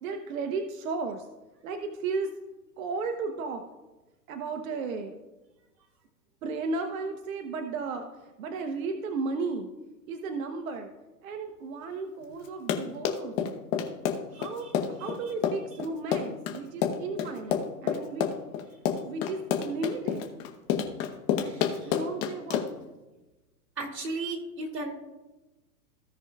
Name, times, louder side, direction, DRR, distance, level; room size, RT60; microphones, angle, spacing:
voice 1, 0.0-1.3 1.6-2.3 2.8-3.6 4.3-5.2 6.4-8.1 8.4-9.7 10.1-10.9 11.2-13.6 14.3-18.3 19.0-20.3 21.4-22.6, right 4 dB, 55° right, 6 dB, 1.0 m, -34 dB
Run, 12.4-22.9, left 8 dB, 30° left, 1.0 m, -29 dB
voice 2, 21.4-21.9 23.8-24.9, right 3 dB, 90° right, 2 dB, 2.3 m, -35 dB
16.5 x 5.9 x 2.4 m, 1.1 s
hypercardioid pair, 135°, 48 cm